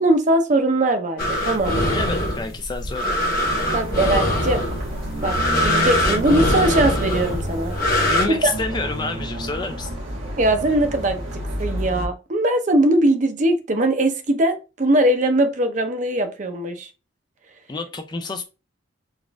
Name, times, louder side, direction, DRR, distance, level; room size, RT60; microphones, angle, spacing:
voice 1, 0.0-1.9 3.7-4.6 5.2-5.3 5.6-7.7 8.3-8.5 10.4-11.2 11.6-16.9, right 1 dB, 40° right, 0.5 m, -20 dB
sound 1, 1.2-8.3, equal, 45° left, 1.1 m, -22 dB
voice 2, 1.9-3.2 8.0-10.0 17.7-18.4, left 3 dB, 20° left, 0.3 m, -29 dB
sound 2, 3.4-12.1, equal, 85° right, 1.3 m, -30 dB
4.0 x 2.4 x 3.4 m
head